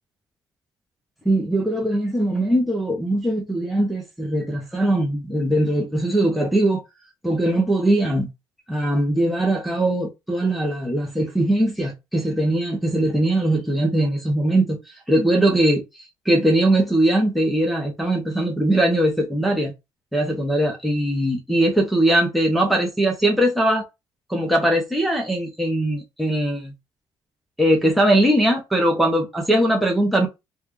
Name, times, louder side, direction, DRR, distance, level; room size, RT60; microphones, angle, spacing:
voice 1, 1.2-6.8 7.2-8.3 8.7-14.8 15.1-15.8 16.3-19.7 20.1-23.8 24.3-26.7 27.6-30.3, right 1 dB, ahead, 0.9 m, -20 dB
2.9 x 2.4 x 3.6 m
cardioid pair, 140°, 8 cm